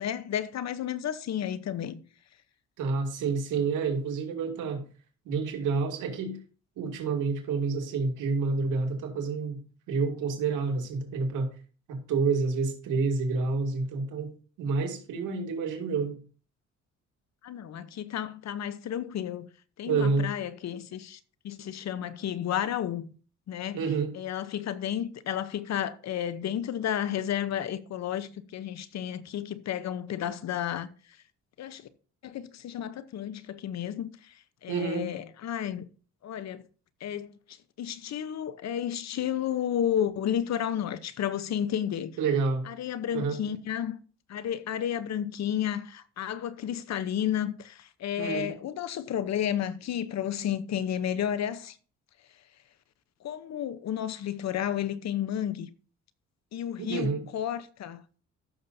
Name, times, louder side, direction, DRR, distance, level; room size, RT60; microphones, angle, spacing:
voice 1, 0.0-2.0 17.4-19.5 19.8-21.2 21.4-23.1 23.5-23.8 24.1-30.9 31.6-31.8 32.2-34.3 34.6-35.8 36.2-36.6 37.0-37.3 37.8-42.1 42.7-44.0 44.3-51.8 53.2-55.7 56.5-58.0, left 10 dB, 60° left, 0.9 m, -32 dB
voice 2, 2.8-4.8 5.3-6.4 6.8-9.6 9.9-11.5 11.9-14.3 14.6-16.2 19.9-20.3 23.7-24.1 34.7-35.1 42.2-42.6 43.1-43.4 48.2-48.5 56.8-57.2, right 4 dB, 90° right, 2.5 m, -28 dB
15.0 x 6.8 x 2.7 m
cardioid pair, 90°, 30 cm